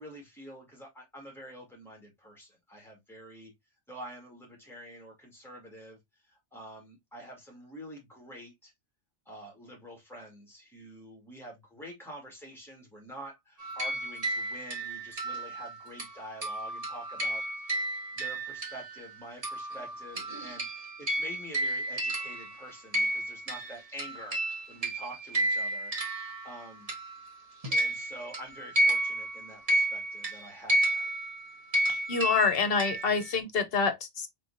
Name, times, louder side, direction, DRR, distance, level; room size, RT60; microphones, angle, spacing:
voice 1, 0.0-3.5 3.9-6.0 6.3-8.7 9.3-17.9 18.1-24.4 24.7-26.9 27.7-31.1, equal, ahead, 2.3 m, -47 dB
sound 1, 13.6-19.1 19.4-27.3 27.6-33.3, right 1 dB, 30° right, 1.3 m, -32 dB
voice 2, 31.9-34.3, left 5 dB, 55° left, 1.1 m, -27 dB
4.4 x 3.9 x 2.7 m
omnidirectional pair, 1.2 m